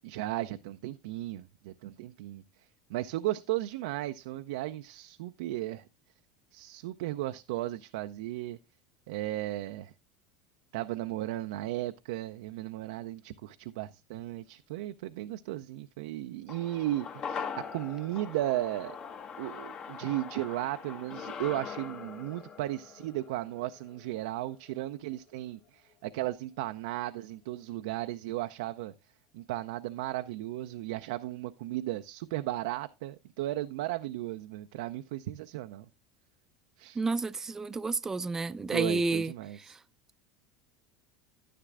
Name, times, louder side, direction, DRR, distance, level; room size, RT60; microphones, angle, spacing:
voice 1, 0.0-2.4 2.9-5.9 6.5-8.6 9.1-9.9 10.7-19.0 19.4-28.9 29.3-35.9 36.8-37.0 38.7-39.7, right 15 dB, 75° right, 0.4 m, -35 dB
sound 1, 16.5-25.0 25.3-25.4, left 6 dB, 40° left, 1.1 m, -42 dB
voice 2, 36.9-39.3 39.7-39.8, right 3 dB, 20° right, 0.5 m, -30 dB
11.0 x 10.0 x 2.4 m
hypercardioid pair, 95°, 2 cm